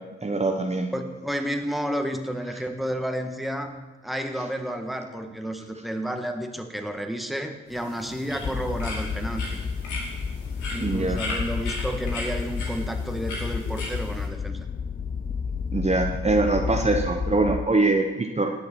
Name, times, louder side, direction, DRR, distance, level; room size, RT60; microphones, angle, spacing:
voice 1, 0.2-0.9 10.8-11.2 15.7-18.5, right 2 dB, 20° right, 2 dB, 1.1 m, -23 dB
voice 2, 0.9-9.6 10.7-14.6, equal, ahead, 4 dB, 1.6 m, -31 dB
sound 1, 7.7-14.3, left 2 dB, 85° left, 2.8 m, -37 dB
sound 2, 8.4-17.6, left 6 dB, 30° left, 0.6 m, -31 dB
19.0 x 6.6 x 4.6 m, 1.2 s
hypercardioid pair, 45°, 29 cm